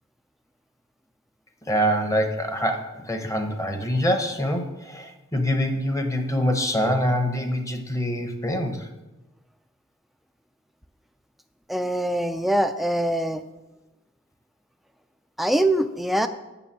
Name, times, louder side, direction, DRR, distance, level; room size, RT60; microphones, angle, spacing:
voice 1, 1.7-8.9, equal, 15° left, 6 dB, 0.8 m, -25 dB
voice 2, 11.7-13.4 15.4-16.3, right 1 dB, ahead, 8 dB, 0.3 m, -23 dB
6.9 x 6.4 x 7.3 m, 1.1 s
head